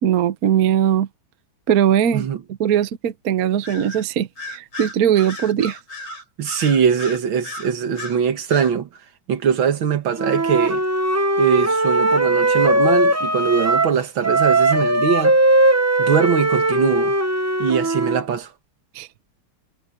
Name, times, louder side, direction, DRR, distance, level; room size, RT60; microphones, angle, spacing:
voice 1, 0.0-1.1 1.7-2.3 2.6-5.8 18.9-19.1, right 9 dB, 55° right, 1.3 m, -19 dB
Bird vocalization bird call bird song, 3.6-4.0 4.4-8.2 8.5-8.7, left 2 dB, 65° left, 6.9 m, -35 dB
voice 2, 6.4-8.9 9.3-10.8 11.4-15.4 16.0-17.1 17.6-18.5, right 7 dB, 80° right, 2.2 m, -21 dB
Wind instrument woodwind instrument, 10.2-14.0 14.2-18.2, right 2 dB, 15° right, 0.6 m, -19 dB
omnidirectional pair, 2.1 m